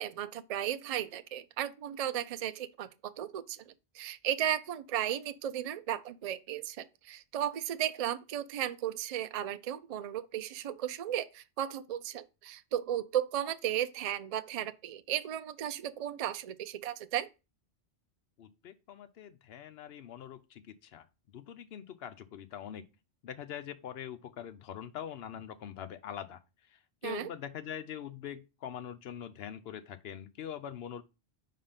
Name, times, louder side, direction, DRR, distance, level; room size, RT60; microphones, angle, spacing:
voice 1, 0.0-17.3 27.0-27.3, right 11 dB, 75° right, 0.3 m, -35 dB
voice 2, 18.4-22.8 23.2-26.4 26.7-31.0, left 9 dB, 65° left, 0.8 m, -43 dB
5.1 x 3.7 x 5.6 m
omnidirectional pair, 1.2 m